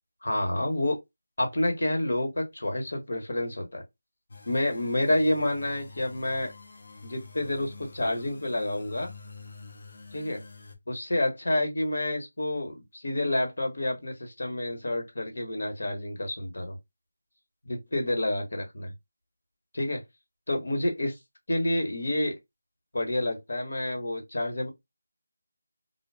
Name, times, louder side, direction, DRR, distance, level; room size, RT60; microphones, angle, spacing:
voice 1, 0.2-1.0 1.4-3.8 4.5-6.5 7.0-9.1 10.1-10.4 10.9-16.8 17.6-18.9 19.7-20.0 20.5-21.2 21.5-22.4 22.9-24.7, left 1 dB, 70° left, 1.1 m, -29 dB
sound 1, 4.3-10.8, left 3 dB, 50° left, 0.6 m, -47 dB
2.2 x 2.2 x 3.4 m
figure-of-eight pair, 175°, 0 cm